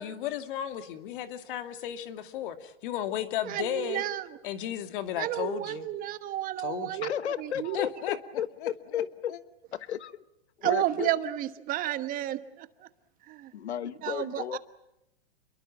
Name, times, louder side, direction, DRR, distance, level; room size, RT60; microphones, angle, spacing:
voice 1, 0.0-4.0 4.4-5.9 6.6-7.1 7.7-8.2 8.6-8.7, left 11 dB, 50° left, 8 dB, 2.4 m, -34 dB
voice 2, 3.4-4.3 5.2-7.1 7.4-7.8 10.6-12.7 13.3-13.5 14.0-14.6, right 13 dB, 25° right, 12 dB, 1.2 m, -31 dB
voice 3, 7.0-9.3 9.7-10.1 10.6-11.1 13.5-14.6, left 10 dB, 85° left, 14 dB, 1.3 m, -33 dB
28.5 x 22.5 x 7.4 m, 0.87 s
hypercardioid pair, 140°, 32 cm